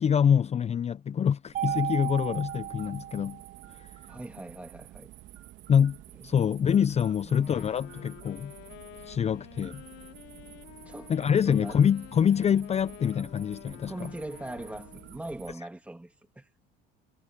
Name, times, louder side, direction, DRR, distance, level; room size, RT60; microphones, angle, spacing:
voice 1, 0.0-3.4 3.7-4.0 5.7-6.0 6.2-8.5 9.0-9.8 11.1-14.1, left 8 dB, 30° left, 0.7 m, -25 dB
Mallet percussion, 1.5-3.8, right 13 dB, 40° right, 0.7 m, -34 dB
sound 1, 1.5-15.5, right 16 dB, 65° right, 3.3 m, -50 dB
voice 2, 4.1-5.1 6.2-6.5 7.2-7.5 10.9-11.1 11.5-11.8 13.9-16.5, right 1 dB, 5° right, 2.0 m, -41 dB
Wind instrument woodwind instrument, 7.3-15.3, left 18 dB, 70° left, 2.7 m, -50 dB
supercardioid pair, 90°, 21 cm